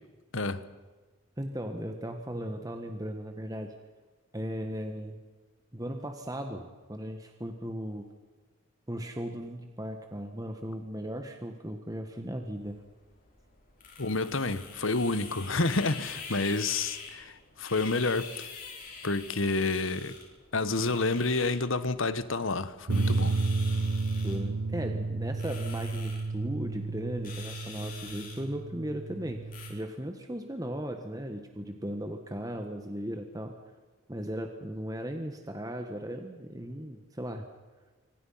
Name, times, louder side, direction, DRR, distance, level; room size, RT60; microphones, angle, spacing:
voice 1, 1.4-3.7 4.3-5.2 5.7-8.1 8.9-12.8 24.2-29.4 29.7-33.5 34.1-37.5, equal, 15° right, 1.5 m, -37 dB
sound 1, 12.5-29.7, left 5 dB, 40° left, 6.5 m, -46 dB
voice 2, 14.0-18.5 19.0-20.2 20.5-23.4, left 3 dB, 70° left, 1.4 m, -29 dB
sound 2, 22.9-29.8, right 3 dB, 80° right, 0.9 m, -32 dB
25.5 x 25.0 x 5.8 m
head